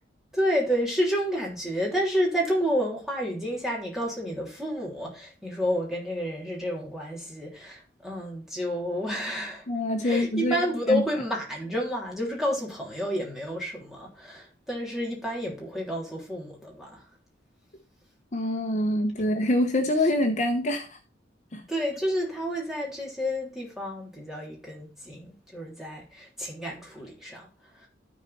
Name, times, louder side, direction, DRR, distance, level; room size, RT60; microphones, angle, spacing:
voice 1, 0.3-9.7 10.0-17.0 19.2-19.3 21.7-27.9, equal, ahead, 3.2 m, -30 dB
voice 2, 9.7-10.6 10.9-11.0 18.3-21.0 21.5-21.6, left 1 dB, 40° left, 0.9 m, -25 dB
13.5 x 4.5 x 4.2 m
head